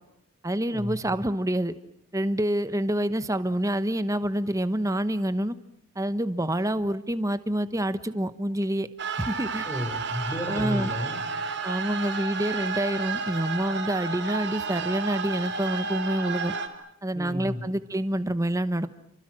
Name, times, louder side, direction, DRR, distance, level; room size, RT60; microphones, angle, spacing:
voice 1, 0.4-1.7 2.1-5.5 5.9-8.9 9.2-9.7 10.5-10.9 11.6-16.5 17.0-18.9, right 1 dB, 15° right, 13 dB, 1.1 m, -27 dB
sound 1, 9.0-16.7, right 4 dB, 50° right, 2.7 m, -32 dB
voice 2, 9.6-11.2 17.1-17.6, equal, 15° left, 6 dB, 4.7 m, -32 dB
29.5 x 24.5 x 7.6 m, 0.69 s
head